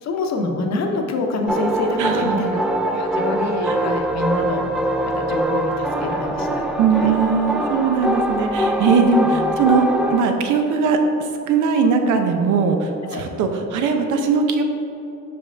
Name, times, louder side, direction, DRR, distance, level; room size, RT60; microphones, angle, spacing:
voice 1, 0.0-4.7 5.1-6.6 7.0-7.1 9.2-9.5 13.0-13.2, left 2 dB, 60° left, 3 dB, 0.8 m, -26 dB
sound 1, 1.5-10.2, right 1 dB, ahead, 0.4 m, -23 dB
voice 2, 2.0-2.5 3.6-3.8 6.8-11.0 11.5-14.6, right 5 dB, 80° right, 5 dB, 0.7 m, -20 dB
5.4 x 5.2 x 3.3 m, 2.9 s
cardioid pair, 90°, 30 cm